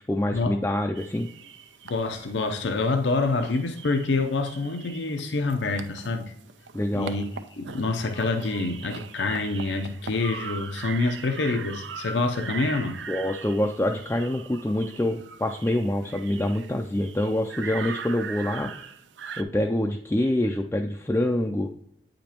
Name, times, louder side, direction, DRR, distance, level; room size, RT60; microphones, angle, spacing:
voice 1, 0.1-1.3 6.7-7.1 13.1-18.9 19.4-21.7, left 1 dB, 15° left, 0.3 m, -26 dB
sound 1, 1.0-19.4, right 6 dB, 90° right, 0.5 m, -41 dB
voice 2, 1.8-6.3 6.9-7.2 7.6-13.0, left 3 dB, 85° left, 0.6 m, -26 dB
8.9 x 5.1 x 2.9 m
head